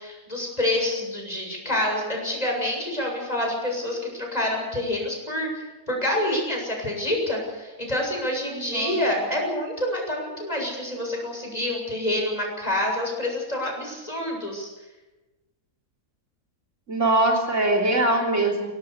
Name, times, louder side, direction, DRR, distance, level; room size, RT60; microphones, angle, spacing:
voice 1, 0.0-14.7, left 1 dB, 25° left, 0 dB, 7.2 m, -27 dB
voice 2, 8.5-9.2 16.9-18.7, right 2 dB, 60° right, 0 dB, 3.7 m, -23 dB
23.5 x 18.5 x 6.9 m, 1.1 s
omnidirectional pair, 1.5 m